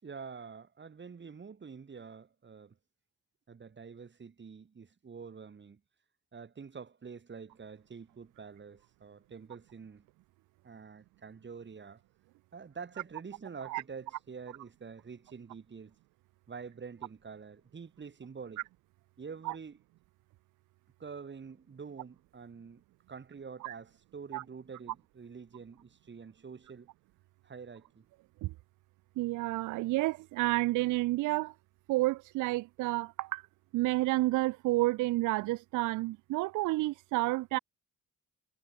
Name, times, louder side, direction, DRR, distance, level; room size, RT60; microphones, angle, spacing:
voice 1, 0.0-2.7 3.5-5.8 6.3-10.0 10.6-12.0 12.5-16.0 16.5-18.7 19.2-19.8 21.0-22.8 23.1-26.9 27.4-28.0, right 5 dB, 40° right, 5.1 m, -47 dB
voice 2, 29.2-31.5 31.9-33.4 33.7-37.6, right 19 dB, 80° right, 0.5 m, -30 dB
cardioid pair, 90°, 30 cm